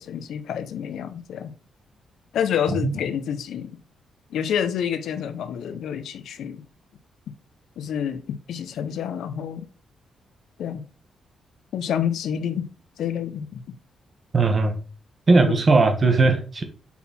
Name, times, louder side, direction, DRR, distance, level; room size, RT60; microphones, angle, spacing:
voice 1, 0.0-1.5 2.3-3.8 4.3-6.6 7.8-9.7 10.6-10.8 11.7-12.7 13.0-13.6 15.5-15.6, left 8 dB, 75° left, 0.7 m, -28 dB
voice 2, 14.3-14.8 15.3-16.6, right 3 dB, 30° right, 1.2 m, -18 dB
5.6 x 4.1 x 4.2 m
wide cardioid pair, 160°, 0 cm